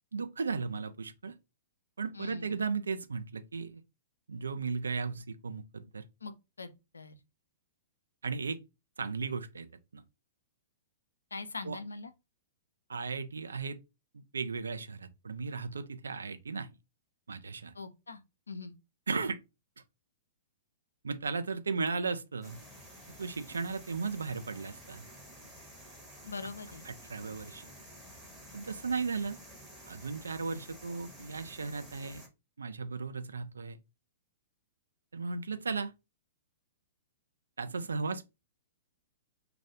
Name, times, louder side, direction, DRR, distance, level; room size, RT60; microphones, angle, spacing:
voice 1, 0.1-1.3 2.0-3.8 4.3-6.0 8.2-8.6 9.0-9.7 9.9-10.0 11.6-11.8 12.9-13.8 14.1-16.7 17.3-17.7 19.1-19.4 21.0-22.6 23.2-25.0 26.8-27.7 28.5-29.4 29.9-32.2 32.6-33.8 35.1-35.9 37.6-38.2, right 4 dB, 70° right, 0.3 m, -36 dB
voice 2, 2.1-2.6 6.2-6.3 6.6-7.2 11.3-12.1 17.8-18.2 18.5-18.7 26.3-26.8, left 3 dB, 75° left, 0.4 m, -42 dB
sound 1, 22.4-32.3, equal, 5° right, 0.8 m, -51 dB
2.2 x 2.0 x 2.8 m
figure-of-eight pair, 110°, 0 cm